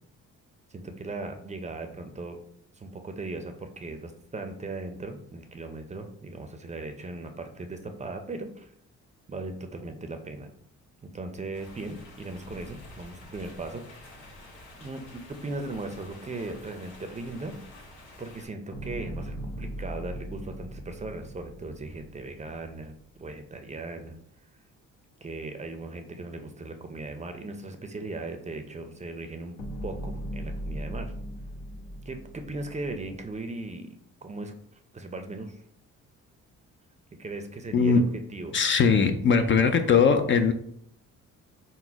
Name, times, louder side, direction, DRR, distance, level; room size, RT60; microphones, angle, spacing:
voice 1, 0.7-2.4 2.8-8.7 9.3-10.5 11.0-13.8 14.8-17.6 18.2-24.2 25.2-29.6 29.8-31.1 32.1-34.5 34.9-35.6 37.1-38.0 38.3-38.6, right 2 dB, 25° right, 6 dB, 0.5 m, -38 dB
sound 1, 11.5-18.5, left 2 dB, 90° left, 1.3 m, -49 dB
sound 2, 18.7-23.0 29.6-33.3, equal, 70° left, 1.0 m, -38 dB
voice 2, 37.7-38.0 38.5-40.5, left 5 dB, 40° left, 8 dB, 0.4 m, -20 dB
4.0 x 2.1 x 4.5 m, 0.66 s
cardioid pair, 90°, 30 cm